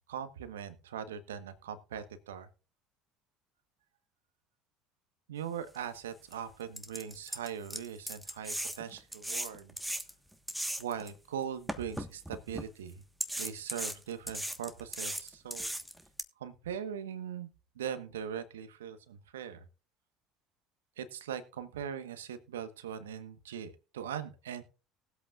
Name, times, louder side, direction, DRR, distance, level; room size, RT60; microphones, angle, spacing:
voice 1, 0.1-2.5 5.3-9.7 10.8-13.0 13.4-15.7 16.4-17.5 17.7-19.6 21.0-24.6, right 8 dB, 80° right, 11 dB, 1.2 m, -40 dB
sound 1, 5.7-5.8 6.3-6.4 6.8-11.1 11.7-12.6 13.2-16.2, right 1 dB, 5° right, 1.3 m, -37 dB
19.5 x 8.2 x 2.4 m, 0.35 s
hypercardioid pair, 65°, 0 cm